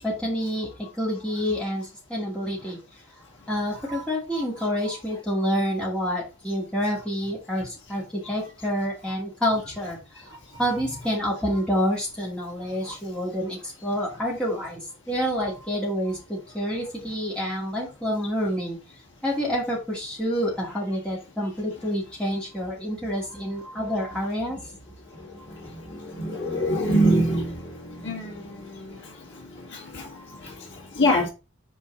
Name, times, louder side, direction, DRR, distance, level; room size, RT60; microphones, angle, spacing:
voice 1, 0.0-2.8 3.5-10.3 10.6-14.8 15.1-18.8 19.2-24.6, equal, 5° left, 2.3 m, -28 dB
voice 2, 10.3-10.6 12.6-13.0 23.6-23.8 25.0-31.3, equal, 55° left, 1.9 m, -27 dB
5.6 x 4.6 x 3.9 m
head